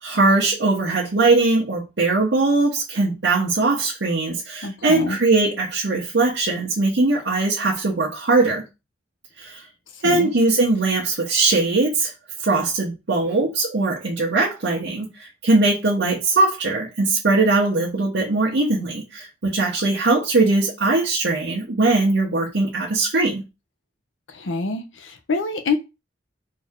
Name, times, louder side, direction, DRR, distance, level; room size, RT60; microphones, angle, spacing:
voice 1, 0.0-8.6 9.4-9.6 10.0-12.1 12.4-23.4, right 3 dB, 65° right, 1.0 m, -20 dB
voice 2, 4.6-5.2 10.0-10.3 24.3-25.8, left 3 dB, 90° left, 0.8 m, -26 dB
4.3 x 2.8 x 3.6 m
head